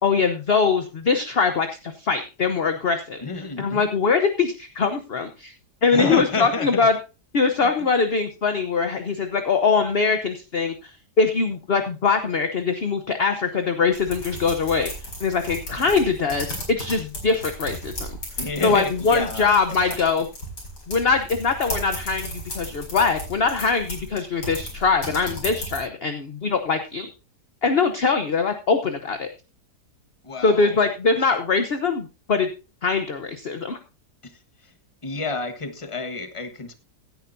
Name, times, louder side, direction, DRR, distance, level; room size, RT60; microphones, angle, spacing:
voice 1, 0.0-3.2 3.6-5.5 5.8-7.0 7.3-10.9 11.2-14.9 15.2-18.2 18.6-20.3 20.9-27.1 27.6-29.3 30.4-32.5 32.8-33.8, left 4 dB, 45° left, 8 dB, 1.0 m, -22 dB
voice 2, 3.2-3.8 5.9-6.9 7.6-7.7 18.4-20.0 30.2-30.8 31.2-31.3 34.2-34.7 35.0-36.7, left 3 dB, 20° left, 8 dB, 1.3 m, -30 dB
sound 1, 13.9-25.8, left 1 dB, 85° left, 5.6 m, -35 dB
16.5 x 10.5 x 2.7 m, 0.31 s
omnidirectional pair, 1.8 m